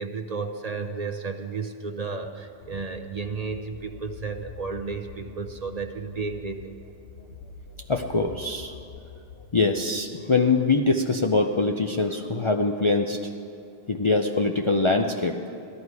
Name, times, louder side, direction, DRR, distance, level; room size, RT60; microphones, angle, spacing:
voice 1, 0.0-6.7, right 4 dB, 40° right, 4 dB, 0.8 m, -33 dB
sound 1, 2.6-10.2, left 5 dB, 75° left, 1.1 m, -46 dB
voice 2, 7.9-8.7 9.5-13.2 13.9-15.4, left 3 dB, 35° left, 2 dB, 0.5 m, -23 dB
16.5 x 12.5 x 4.8 m, 2.9 s
omnidirectional pair, 1.1 m